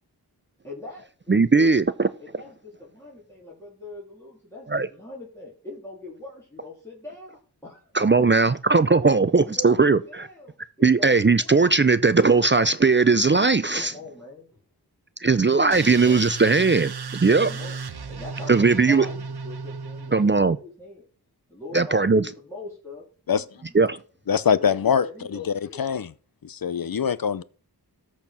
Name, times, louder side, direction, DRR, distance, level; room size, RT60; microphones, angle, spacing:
voice 1, 0.6-1.7 2.2-7.9 8.2-8.3 9.3-11.6 13.7-14.6 15.8-16.3 17.4-17.8 18.1-21.1 21.5-23.8 24.5-25.8, left 2 dB, 5° left, 3.6 m, -42 dB
voice 2, 1.3-2.1 4.7-4.9 7.9-10.3 10.8-13.9 15.2-16.9 17.2-17.5 18.5-19.1 20.1-20.6 21.7-22.3 23.7-24.0, right 4 dB, 30° right, 0.5 m, -19 dB
sound 1, 15.7-20.5, right 5 dB, 70° right, 1.0 m, -34 dB
voice 3, 24.3-25.1 25.8-26.1 26.4-27.4, left 7 dB, 60° left, 0.7 m, -23 dB
13.5 x 4.5 x 6.1 m
wide cardioid pair, 50°, 40 cm